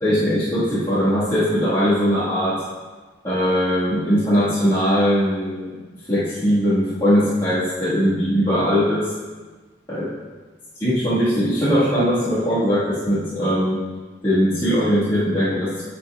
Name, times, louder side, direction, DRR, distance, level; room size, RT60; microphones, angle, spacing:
voice 1, 0.0-2.6 3.2-5.7 6.1-9.1 9.9-10.1 10.8-13.8 14.2-15.7, equal, 25° left, -14 dB, 1.7 m, -20 dB
9.5 x 5.5 x 2.4 m, 1.3 s
head